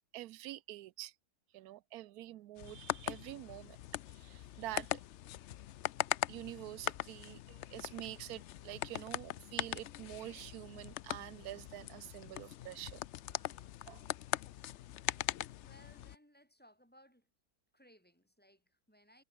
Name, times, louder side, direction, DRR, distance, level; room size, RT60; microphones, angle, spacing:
voice 1, 0.1-1.1 1.5-3.8 4.1-5.0 6.3-13.0 13.3-13.4 13.9-14.1, right 15 dB, 75° right, 1.1 m, -47 dB
sound 1, 2.6-16.2, left 13 dB, 65° left, 0.7 m, -41 dB
voice 2, 15.6-17.3 17.7-19.2, equal, 5° left, 6.5 m, -63 dB
omnidirectional pair, 1.6 m